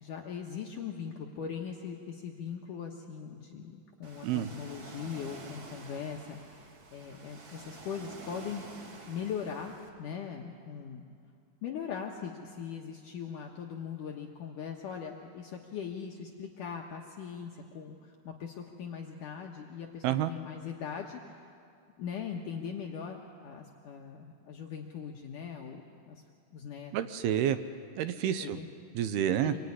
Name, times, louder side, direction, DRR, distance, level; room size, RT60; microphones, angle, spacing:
voice 1, 0.0-8.7 9.1-11.1 11.6-21.4 22.0-26.2 26.5-27.2 28.4-28.7 29.4-29.6, left 7 dB, 65° left, 1 dB, 2.4 m, -40 dB
Ocean, 4.0-9.9, right 3 dB, 45° right, 1.8 m, -49 dB
voice 2, 26.9-27.6 28.0-28.6 29.0-29.5, right 10 dB, 80° right, 11 dB, 2.7 m, -29 dB
26.0 x 22.0 x 9.8 m, 2.3 s
omnidirectional pair, 4.6 m